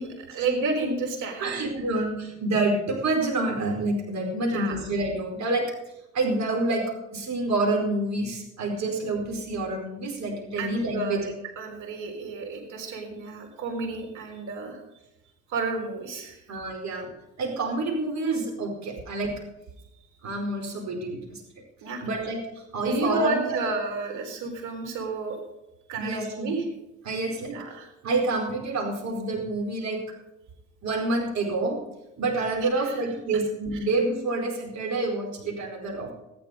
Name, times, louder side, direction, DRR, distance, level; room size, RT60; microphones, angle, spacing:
voice 1, 0.0-1.6 4.4-4.7 10.6-14.8 15.5-16.4 21.8-22.0 22.8-25.4 25.9-26.6 27.5-27.9 32.6-33.0, right 3 dB, 90° right, 2 dB, 4.2 m, -31 dB
voice 2, 1.4-5.7 6.1-11.3 16.5-17.1 17.4-19.4 20.2-21.4 22.0-23.7 25.9-26.5 27.0-27.6 28.0-30.0 30.8-31.8 32.2-36.1, right 2 dB, 65° right, 1 dB, 4.8 m, -28 dB
14.5 x 11.0 x 5.2 m, 0.91 s
cardioid pair, 90°, 30 cm